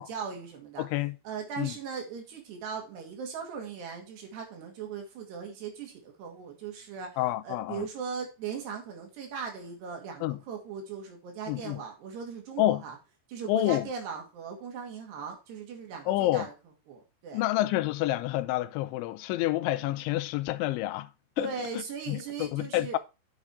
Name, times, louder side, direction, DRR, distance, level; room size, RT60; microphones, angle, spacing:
voice 1, 0.0-0.8 1.3-7.1 7.4-13.0 13.3-16.5 16.9-17.4 21.4-23.0, right 6 dB, 60° right, 3.9 m, -39 dB
voice 2, 0.8-1.2 1.6-1.7 7.2-7.9 10.2-10.4 11.5-11.8 12.6-12.8 13.5-13.9 16.1-16.5 17.3-21.1 21.4-21.5 22.1-23.0, left 15 dB, 80° left, 2.8 m, -28 dB
8.7 x 6.6 x 4.7 m
omnidirectional pair, 5.8 m